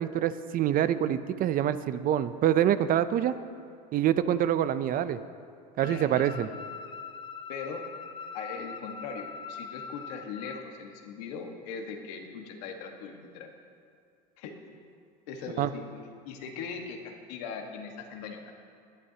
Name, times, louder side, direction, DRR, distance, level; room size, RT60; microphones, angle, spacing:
voice 1, 0.0-3.4 3.9-5.2 5.8-6.5 15.6-15.7, right 10 dB, 45° right, 13 dB, 0.6 m, -26 dB
voice 2, 5.8-6.3 7.5-7.8 8.3-13.5 14.4-14.6 15.3-15.8 16.2-18.5, left 5 dB, 85° left, 3 dB, 1.6 m, -40 dB
sound 1, 5.8-10.6, left 5 dB, 25° left, 0.7 m, -42 dB
20.5 x 11.0 x 2.9 m, 2.3 s
supercardioid pair, 110°, 20 cm